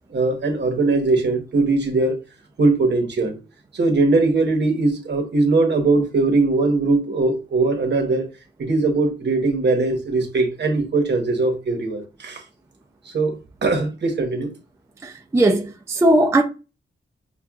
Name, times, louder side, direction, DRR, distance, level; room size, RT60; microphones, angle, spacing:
voice 1, 0.1-2.1 2.6-3.4 3.7-8.3 8.6-12.4 13.1-14.5, right 3 dB, 55° right, 1.0 m, -20 dB
voice 2, 15.0-16.4, right 1 dB, 15° right, 0.3 m, -18 dB
5.9 x 2.2 x 2.3 m
wide cardioid pair, 145°, 21 cm